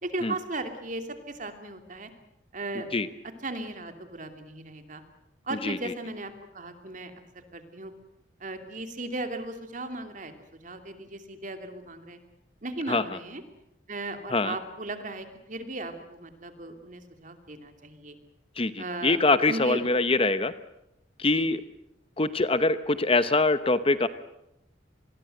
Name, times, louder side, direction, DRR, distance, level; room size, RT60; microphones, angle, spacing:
voice 1, 0.0-2.1 2.5-3.2 3.4-5.0 5.4-7.9 8.4-10.3 10.6-12.2 12.6-13.4 13.9-18.2 18.8-19.2 19.5-19.8 21.3-21.5, right 2 dB, 45° right, 7 dB, 2.8 m, -36 dB
voice 2, 5.6-5.9 12.9-13.0 14.3-14.6 18.6-20.5 21.2-21.6 22.2-24.1, left 3 dB, 30° left, 13 dB, 0.9 m, -24 dB
27.0 x 21.0 x 7.9 m, 0.82 s
head